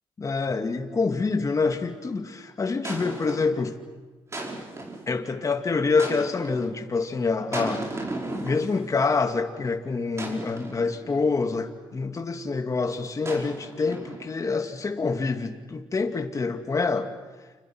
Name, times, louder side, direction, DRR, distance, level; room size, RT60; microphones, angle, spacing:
voice 1, 0.2-3.8 5.1-7.9 8.4-17.1, left 4 dB, 40° left, 5 dB, 2.5 m, -26 dB
sound 1, 1.6-1.9 2.8-3.6 4.3-5.1 6.0-6.7 7.5-9.2 10.2-11.4 13.2-14.5, right 2 dB, 30° right, 5.1 m, -36 dB
30.0 x 26.5 x 6.3 m, 1.3 s
cardioid pair, 75°, 9 cm